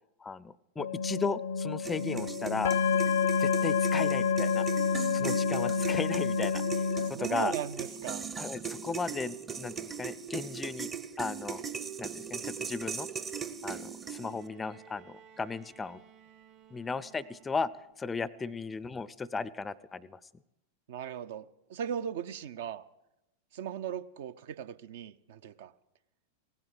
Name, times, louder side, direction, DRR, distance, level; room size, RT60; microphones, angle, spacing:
voice 1, 0.2-2.8 3.4-4.7 5.1-7.5 8.4-10.9 11.2-11.6 12.0-13.1 13.6-16.0 16.7-17.7 18.0-20.2, left 4 dB, 15° left, 20 dB, 0.5 m, -36 dB
sound 1, 0.8-7.1, left 5 dB, 65° left, 0.5 m, -28 dB
sound 2, 1.9-14.5, right 7 dB, 20° right, 0.8 m, -39 dB
voice 2, 7.1-8.3 18.4-18.5 20.9-22.8 23.5-25.7, right 9 dB, 55° right, 14 dB, 0.6 m, -38 dB
Bowed string instrument, 14.0-18.1 19.3-19.4, right 8 dB, 40° right, 1.2 m, -57 dB
17.5 x 9.7 x 8.0 m, 0.91 s
figure-of-eight pair, 90°, 0 cm